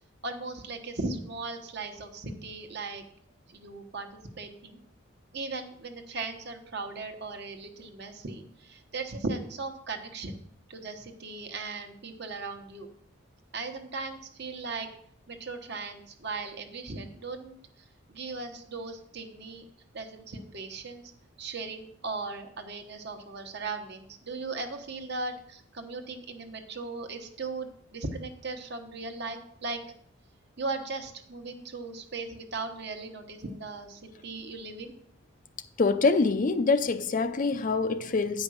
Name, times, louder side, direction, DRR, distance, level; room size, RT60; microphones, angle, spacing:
voice 1, 0.2-3.0 3.5-4.8 5.3-10.4 10.7-12.9 13.5-14.9 15.3-17.6 18.1-19.6 19.9-21.0 21.4-29.8 30.6-34.9, right 3 dB, 55° right, 1.1 m, -37 dB
voice 2, 35.8-38.4, left 4 dB, 40° left, 0.5 m, -25 dB
9.3 x 5.3 x 6.3 m
head